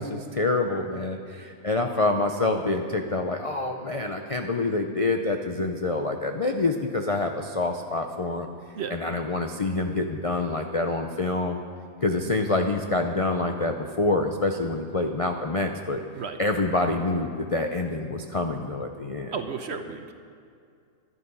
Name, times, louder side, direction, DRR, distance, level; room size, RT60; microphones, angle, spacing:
voice 1, 0.0-8.5 8.9-11.6 12.0-16.0 16.4-19.3, left 2 dB, 45° left, 4 dB, 0.4 m, -26 dB
voice 2, 19.3-20.1, right 5 dB, 55° right, 7 dB, 1.0 m, -33 dB
14.0 x 11.5 x 5.4 m, 2.3 s
omnidirectional pair, 1.5 m